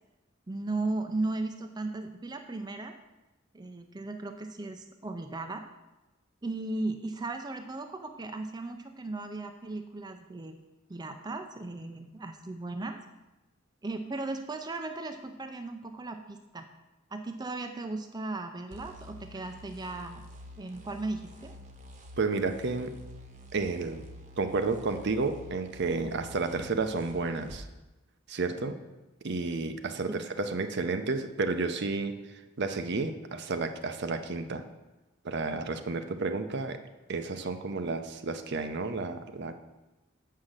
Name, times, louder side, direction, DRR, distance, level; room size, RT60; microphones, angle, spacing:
voice 1, 0.5-3.0 3.5-5.7 6.4-10.6 10.9-13.0 13.8-16.7 17.1-20.3 20.6-21.5 28.6-28.8 30.1-30.2, right 2 dB, 20° right, 6 dB, 0.5 m, -36 dB
sound 1, 18.7-27.6, equal, 40° right, 1.0 m, -49 dB
voice 2, 22.2-23.0 23.5-24.0 24.4-27.7 28.3-28.8 29.2-32.1 32.6-34.6 35.2-36.8 37.1-39.5, right 3 dB, 60° right, 8 dB, 0.7 m, -31 dB
7.2 x 5.7 x 6.5 m, 1.0 s
head